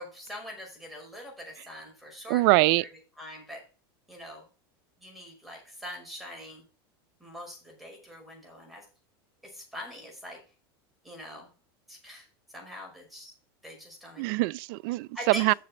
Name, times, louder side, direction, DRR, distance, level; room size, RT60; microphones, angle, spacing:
voice 1, 0.0-2.4 2.8-2.9 3.2-3.6 4.1-4.4 5.0-6.6 7.2-8.8 9.4-10.4 11.0-11.5 11.9-12.3 12.5-13.3 13.6-14.3 15.1-15.5, left 1 dB, ahead, 5.6 m, -43 dB
voice 2, 2.3-2.8 14.2-15.5, right 22 dB, 60° right, 0.4 m, -23 dB
7.5 x 6.8 x 6.4 m
supercardioid pair, 125°, 13 cm